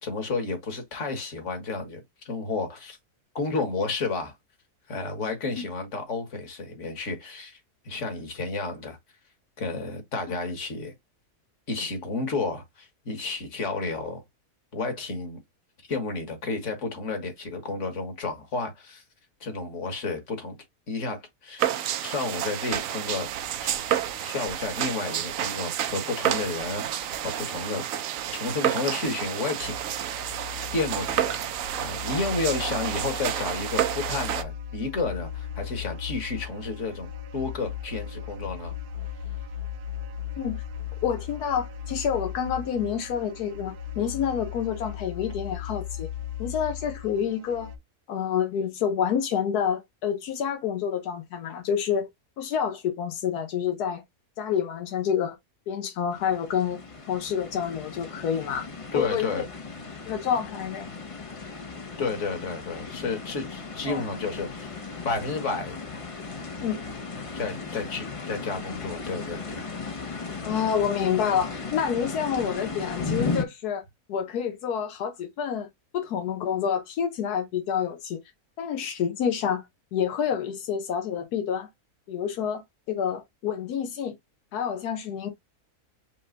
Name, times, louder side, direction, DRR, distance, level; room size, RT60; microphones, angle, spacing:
voice 1, 0.0-3.0 3.3-4.3 4.9-7.6 7.8-9.0 9.6-10.9 11.7-14.2 14.7-15.4 15.9-19.0 19.4-20.6 20.9-21.7 22.0-23.3 23.6-27.8 28.3-30.1 30.7-31.5 31.8-38.7 58.9-59.4 62.0-64.8 65.0-65.8 67.3-69.7, left 3 dB, 55° left, 1.8 m, -31 dB
sound 1, 21.6-34.4, right 11 dB, 70° right, 0.9 m, -30 dB
sound 2, 29.6-47.8, left 9 dB, 85° right, 1.2 m, -37 dB
voice 2, 41.0-46.1 46.4-47.7 48.1-52.1 52.4-54.0 54.4-55.4 55.7-56.8 57.1-58.7 58.9-59.4 60.1-60.8 63.8-64.0 66.6-66.8 70.4-73.8 74.1-75.7 75.9-78.2 78.6-79.6 79.9-81.7 82.1-82.6 82.9-84.1 84.5-85.3, left 8 dB, 90° left, 1.4 m, -28 dB
sound 3, 56.1-73.4, left 4 dB, 35° left, 0.5 m, -36 dB
5.5 x 2.1 x 3.9 m
omnidirectional pair, 1.6 m